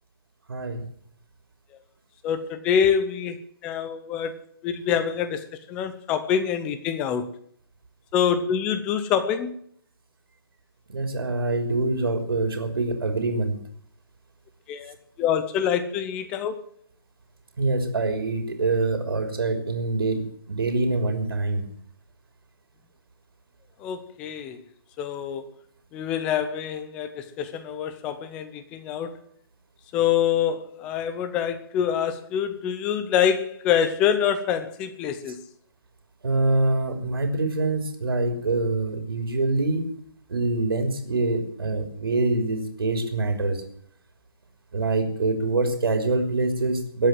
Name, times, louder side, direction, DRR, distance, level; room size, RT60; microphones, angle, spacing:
voice 1, 0.5-0.8 10.9-13.5 17.6-21.7 36.2-39.8 40.3-43.6 44.7-47.1, right 2 dB, 75° right, 3.3 m, -25 dB
voice 2, 2.2-4.4 4.6-7.3 8.1-9.6 14.7-16.5 23.8-24.6 25.0-25.5 25.9-29.2 29.9-35.4, left 8 dB, 10° left, 0.5 m, -26 dB
20.5 x 7.9 x 7.7 m
hypercardioid pair, 175°, 13 cm